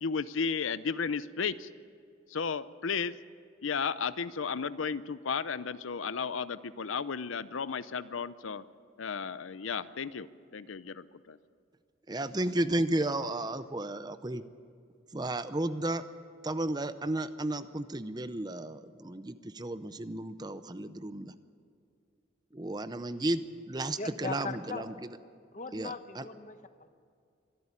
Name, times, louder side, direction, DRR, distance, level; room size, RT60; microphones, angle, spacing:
voice 1, 0.0-1.7 2.3-3.2 3.6-8.6 9.0-10.3 10.5-11.4, left 5 dB, 85° left, 15 dB, 0.6 m, -34 dB
voice 2, 12.1-14.4 15.1-16.0 16.4-21.3 22.5-25.2 25.7-26.3, right 1 dB, 20° right, 12 dB, 0.6 m, -33 dB
voice 3, 24.0-24.8 25.5-26.9, left 4 dB, 40° left, 9 dB, 1.1 m, -39 dB
24.5 x 12.5 x 9.9 m, 2.3 s
head